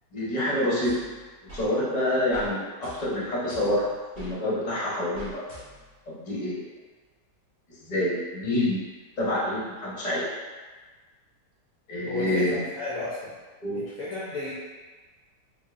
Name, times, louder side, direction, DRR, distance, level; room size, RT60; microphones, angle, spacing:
voice 1, 0.1-1.0 1.5-5.5 6.1-6.7 7.7-8.9 9.2-10.3 11.9-12.6 13.6-13.8, left 1 dB, 30° left, -7 dB, 0.8 m, -27 dB
sound 1, 0.8-1.7 2.3-2.5 2.8-4.3 5.1-6.0, right 1 dB, 15° right, 1.2 m, -45 dB
voice 2, 12.1-13.3 13.7-14.6, left 2 dB, 65° left, -6 dB, 0.9 m, -33 dB
4.7 x 2.7 x 2.5 m, 1.4 s
omnidirectional pair, 1.9 m